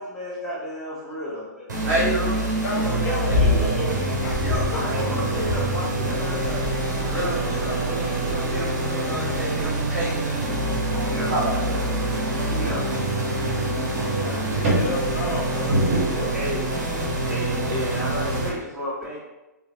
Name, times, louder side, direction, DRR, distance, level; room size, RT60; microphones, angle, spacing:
voice 1, 0.0-2.3 4.7-7.8 11.0-11.3 12.5-12.8 16.3-16.7 17.3-19.2, equal, ahead, -12 dB, 1.4 m, -33 dB
sound 1, 1.7-18.5, right 2 dB, 75° right, 0.8 m, -26 dB
voice 2, 1.8-2.4 2.7-3.6 4.4-4.7 7.1-11.8 13.6-13.7 14.0-14.3 14.6-15.0 15.3-16.1, right 1 dB, 50° right, -5 dB, 1.2 m, -28 dB
voice 3, 2.6-5.7 7.4-8.0 14.1-15.8 16.1-16.4, equal, 50° left, -3 dB, 0.8 m, -33 dB
sound 2, 3.3-3.7 4.2-4.8 5.3-5.9 6.4-6.9 7.5-7.9 8.6-8.9 9.9-10.0, left 3 dB, 80° left, 0.6 m, -26 dB
sound 3, 6.2-18.4, equal, 25° right, 1.4 m, -40 dB
3.0 x 2.3 x 2.6 m, 1.0 s
hypercardioid pair, 130°, 10 cm